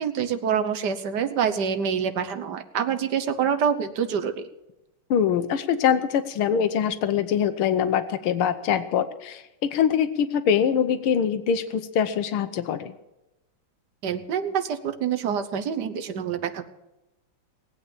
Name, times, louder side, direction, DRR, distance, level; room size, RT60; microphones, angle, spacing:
voice 1, 0.0-4.5 14.0-16.7, right 7 dB, 60° right, 8 dB, 1.4 m, -26 dB
voice 2, 5.1-12.9, left 8 dB, 90° left, 11 dB, 1.8 m, -23 dB
19.0 x 8.6 x 7.2 m, 0.96 s
omnidirectional pair, 2.3 m